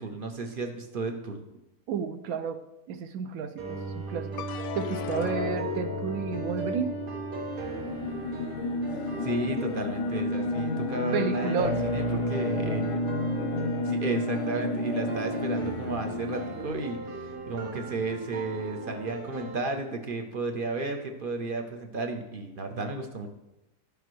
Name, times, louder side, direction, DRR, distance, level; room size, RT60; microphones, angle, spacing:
voice 1, 0.0-1.4 9.2-12.8 13.8-23.3, right 3 dB, 55° right, 5 dB, 0.6 m, -33 dB
voice 2, 1.9-2.6 2.9-6.9 11.1-11.8, right 6 dB, 70° right, 9 dB, 0.9 m, -32 dB
sound 1, 3.6-19.6, right 3 dB, 85° right, 1.8 m, -36 dB
sound 2, 4.4-10.8 11.3-11.9, left 8 dB, 65° left, 0.8 m, -39 dB
sound 3, 7.5-16.7, left 2 dB, 90° left, 1.4 m, -31 dB
12.0 x 6.7 x 3.1 m, 0.95 s
omnidirectional pair, 1.8 m